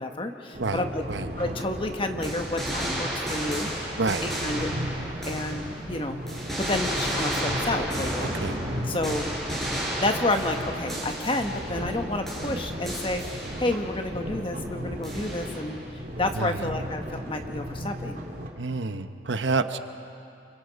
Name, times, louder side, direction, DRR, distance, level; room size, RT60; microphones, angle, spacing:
voice 1, 0.0-1.0 1.4-3.7 4.2-4.7 5.2-6.2 6.5-8.3 8.9-9.3 10.0-15.8 16.2-18.3, left 2 dB, 30° left, 5 dB, 1.3 m, -30 dB
sound 1, 0.5-18.5, equal, 50° right, 2.5 m, -36 dB
sound 2, 2.2-5.9 6.3-12.0 12.3-13.9 15.0-15.8, equal, ahead, 5.8 m, -33 dB
voice 2, 8.2-8.6 16.3-16.7 18.6-19.8, right 3 dB, 90° right, 9 dB, 0.9 m, -28 dB
29.0 x 24.0 x 5.3 m, 2.7 s
head